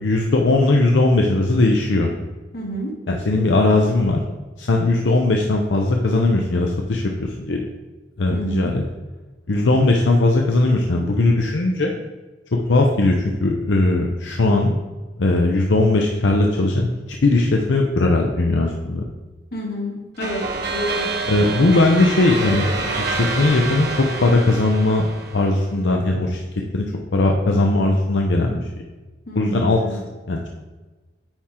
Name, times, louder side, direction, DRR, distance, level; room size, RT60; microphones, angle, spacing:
voice 1, 0.0-2.1 3.1-4.2 4.6-7.6 8.2-8.8 9.5-11.9 12.7-14.7 15.2-16.9 17.2-19.0 21.3-22.7 23.0-25.1 25.3-26.4 26.7-28.7 29.3-30.0 30.3-30.5, left 2 dB, 85° left, 1 dB, 0.7 m, -18 dB
voice 2, 2.5-2.9 8.3-8.7 19.5-20.4 20.7-21.1 29.3-30.0, equal, 60° left, -3 dB, 2.2 m, -28 dB
sound 1, 20.2-25.7, right 3 dB, 60° right, 1.1 m, -27 dB
9.0 x 3.7 x 4.3 m, 1.2 s
head